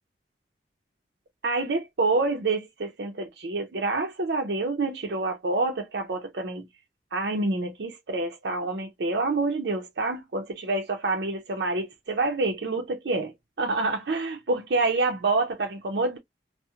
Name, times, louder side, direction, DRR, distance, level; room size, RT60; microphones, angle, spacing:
voice 1, 1.4-6.7 7.1-13.3 13.6-16.2, right 3 dB, 70° right, 0.5 m, -27 dB
2.9 x 2.1 x 2.2 m
head